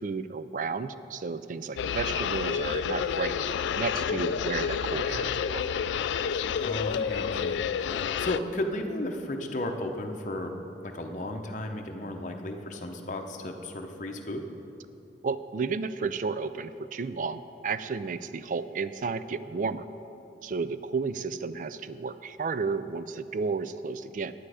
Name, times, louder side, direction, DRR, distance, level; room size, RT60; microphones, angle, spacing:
voice 1, 0.0-3.3 3.7-5.7 15.2-19.9 20.4-24.3, right 4 dB, 45° right, 13 dB, 0.3 m, -32 dB
sound 1, 1.8-8.4, left 7 dB, 90° left, 0.3 m, -29 dB
voice 2, 6.6-10.5 10.8-14.4, left 1 dB, 45° left, 3 dB, 0.8 m, -34 dB
10.0 x 9.6 x 4.9 m, 2.9 s
head